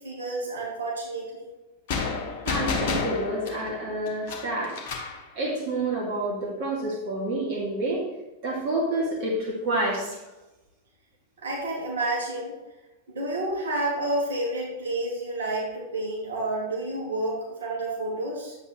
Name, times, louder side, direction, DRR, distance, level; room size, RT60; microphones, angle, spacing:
voice 1, 0.0-1.5 11.4-12.5 13.1-18.6, right 2 dB, 65° right, -3 dB, 2.6 m, -30 dB
sound 1, 1.9-5.2, left 5 dB, 50° left, 1.2 m, -30 dB
voice 2, 2.4-4.8 5.3-8.0 8.4-10.2, right 2 dB, 45° right, -3 dB, 2.4 m, -28 dB
10.5 x 8.2 x 3.2 m, 1.0 s
figure-of-eight pair, 90°, 0 cm